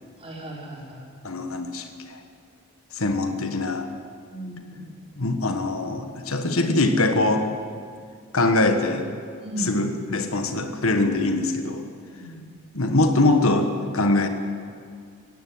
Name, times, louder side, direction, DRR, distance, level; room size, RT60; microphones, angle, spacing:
voice 1, 0.2-1.0 4.3-4.9 9.4-9.7 12.1-12.4, right 1 dB, 25° right, -3 dB, 5.0 m, -36 dB
voice 2, 1.2-2.2 2.9-3.9 5.2-7.5 8.3-9.1 9.6-11.8 12.7-14.3, left 2 dB, 65° left, 7 dB, 1.5 m, -23 dB
18.5 x 15.5 x 9.4 m, 2.2 s
head